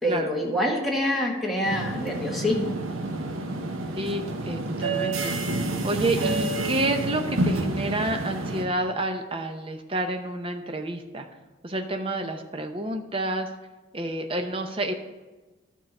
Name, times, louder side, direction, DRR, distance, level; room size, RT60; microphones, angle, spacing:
voice 1, 0.0-2.7, equal, ahead, -3 dB, 1.5 m, -26 dB
sound 1, 1.6-8.6, right 2 dB, 85° right, 0.9 m, -29 dB
voice 2, 3.9-5.3 5.8-11.3 11.6-13.5 13.9-14.9, right 1 dB, 25° right, 5 dB, 0.7 m, -29 dB
11.5 x 4.6 x 6.5 m, 1.2 s
head